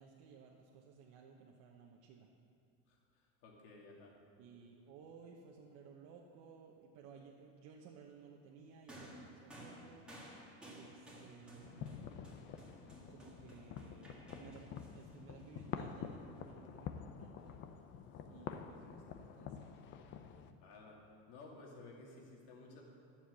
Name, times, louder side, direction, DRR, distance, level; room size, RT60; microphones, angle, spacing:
voice 1, 0.0-2.3 4.4-10.1 10.6-12.1 13.1-17.6 18.3-19.9, right 6 dB, 60° right, -1 dB, 1.1 m, -58 dB
voice 2, 2.9-4.1 20.6-21.0 21.3-22.8, left 3 dB, 75° left, -1 dB, 2.7 m, -55 dB
sound 1, 8.9-16.4 17.4-17.5, equal, 5° right, 2.0 m, -56 dB
sound 2, 11.6-20.5, left 7 dB, 35° left, 0.6 m, -48 dB
11.5 x 7.4 x 7.7 m, 2.5 s
cardioid pair, 155°, 32 cm